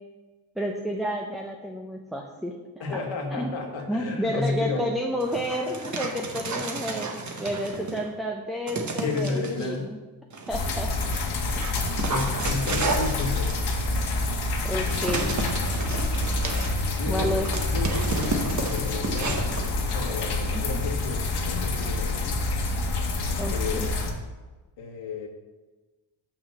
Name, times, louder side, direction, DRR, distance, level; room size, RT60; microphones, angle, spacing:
voice 1, 0.6-3.0 3.3-3.5 3.9-10.0 10.5-10.9 14.6-15.3 17.1-17.5 20.5-20.6 23.4-23.9, equal, ahead, 1 dB, 0.7 m, -30 dB
voice 2, 2.8-4.9 9.0-9.9 11.7-13.6 17.0-17.3 17.7-22.4 23.5-23.9 24.8-25.3, left 3 dB, 75° left, 1 dB, 1.7 m, -32 dB
Dog, 5.2-8.1 8.7-9.7 10.3-20.7, right 3 dB, 35° right, 1.3 m, -33 dB
sound 1, 10.5-24.1, left 2 dB, 55° left, 1.5 m, -27 dB
6.2 x 5.6 x 6.8 m, 1.2 s
cardioid pair, 100°, 48 cm